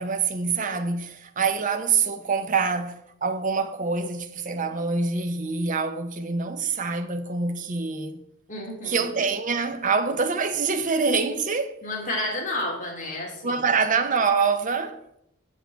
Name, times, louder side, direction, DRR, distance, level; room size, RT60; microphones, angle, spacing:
voice 1, 0.0-8.2 8.9-11.8 13.4-15.0, right 5 dB, 40° right, 0.7 m, -25 dB
voice 2, 8.5-9.1 11.8-13.6, left 1 dB, 40° left, 2.3 m, -31 dB
7.8 x 7.2 x 4.5 m
head